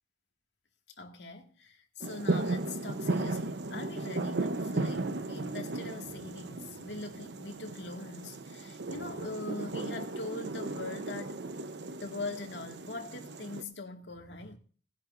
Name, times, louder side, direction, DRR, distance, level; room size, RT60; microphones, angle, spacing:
voice 1, 1.0-11.4 12.0-14.6, left 2 dB, 85° left, 2.0 m, -42 dB
sound 1, 2.0-13.6, right 2 dB, 70° right, 0.9 m, -36 dB
18.5 x 10.5 x 2.6 m
head